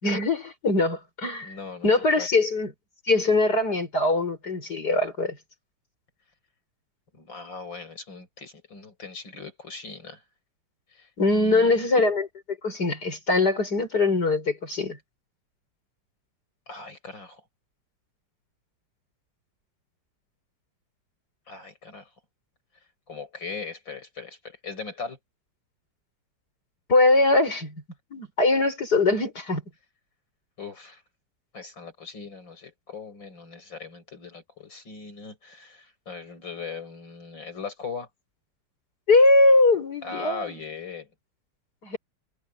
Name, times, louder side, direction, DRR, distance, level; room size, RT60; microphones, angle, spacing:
voice 1, 0.0-1.5 1.8-2.7 3.1-5.4 11.2-12.3 12.6-15.0 26.9-27.7 28.1-29.6 39.1-40.5 41.8-42.0, left 2 dB, 55° left, 6.2 m, -22 dB
voice 2, 1.4-2.3 7.1-10.2 10.9-11.9 16.7-17.4 21.5-22.1 23.1-25.2 30.6-31.0 31.5-38.1 40.0-41.1, left 4 dB, 75° left, 6.9 m, -39 dB
omnidirectional pair, 2.0 m